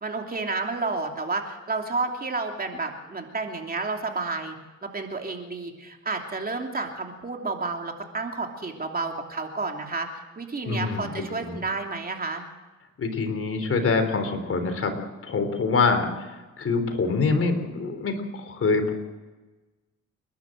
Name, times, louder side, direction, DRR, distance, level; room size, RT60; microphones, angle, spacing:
voice 1, 0.0-4.6 4.8-10.1 10.4-12.4, right 3 dB, 30° right, 3 dB, 3.0 m, -31 dB
voice 2, 10.6-11.1 11.4-11.6 13.0-15.0 15.2-19.0, left 4 dB, 50° left, 7 dB, 3.8 m, -25 dB
28.0 x 12.0 x 7.9 m, 1.2 s
cardioid pair, 90°, 30 cm